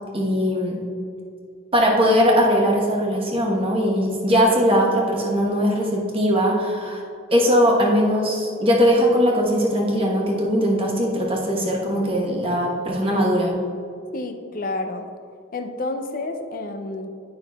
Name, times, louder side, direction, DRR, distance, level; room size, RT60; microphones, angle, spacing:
voice 1, 0.1-0.8 1.7-7.0 7.3-13.5, equal, 25° right, -2 dB, 1.0 m, -20 dB
voice 2, 14.1-15.1 15.5-17.1, left 2 dB, 40° left, 7 dB, 0.4 m, -29 dB
9.4 x 5.7 x 2.3 m, 2.4 s
head